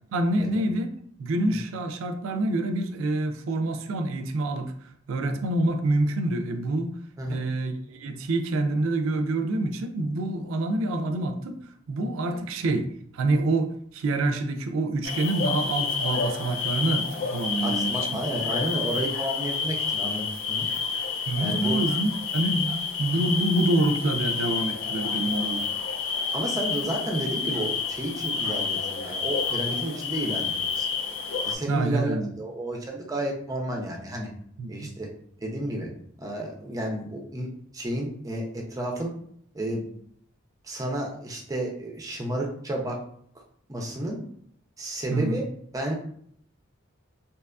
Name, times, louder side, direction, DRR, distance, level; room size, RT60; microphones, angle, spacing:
voice 1, 0.1-0.9 1.2-4.7 5.1-7.0 7.3-11.6 11.9-12.9 13.1-18.2 21.3-25.7 31.7-32.3 34.6-34.9 45.1-45.4, right 2 dB, 85° right, 0.3 m, -26 dB
sound 1, 15.0-31.5, left 5 dB, 75° left, 0.4 m, -29 dB
voice 2, 17.6-20.7 21.4-21.8 26.3-30.9 31.5-34.3 34.7-35.1 35.4-35.9 36.2-37.5 37.7-39.1 39.5-39.9 40.6-43.0 43.7-44.2 44.8-45.4 45.7-45.9, right 1 dB, 15° right, 0.4 m, -31 dB
2.8 x 2.3 x 2.3 m
head